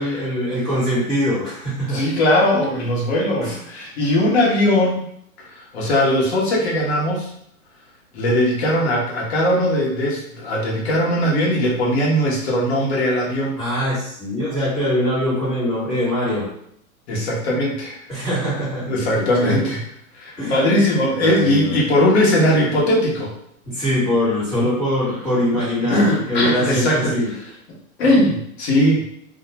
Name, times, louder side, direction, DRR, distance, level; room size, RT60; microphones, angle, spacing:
voice 1, 0.0-2.0 3.4-3.6 13.6-16.5 18.1-19.7 20.4-20.6 21.1-21.8 23.6-27.3, equal, ahead, -14 dB, 1.2 m, -23 dB
voice 2, 1.9-5.0 5.4-7.3 8.1-13.7 17.1-18.0 18.9-19.8 20.1-23.3 24.5-24.7 25.5-27.1 28.0-29.0, left 1 dB, 50° left, -3 dB, 0.9 m, -19 dB
2.3 x 2.2 x 2.9 m, 0.70 s
supercardioid pair, 170°, 43 cm